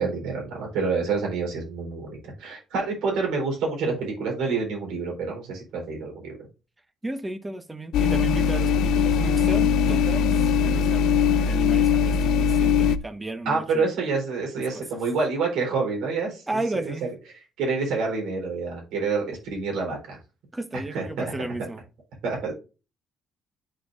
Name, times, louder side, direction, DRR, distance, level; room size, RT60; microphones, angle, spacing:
voice 1, 0.0-6.4 13.5-16.9 17.6-20.2 20.9-21.3 22.2-22.5, right 4 dB, 85° right, 4.0 m, -28 dB
voice 2, 7.0-13.9 14.7-14.8 16.5-17.0 20.5-21.8, right 2 dB, 15° right, 1.2 m, -34 dB
sound 1, 7.9-13.0, left 6 dB, 80° left, 0.4 m, -21 dB
11.5 x 4.6 x 2.6 m
cardioid pair, 90°, 0 cm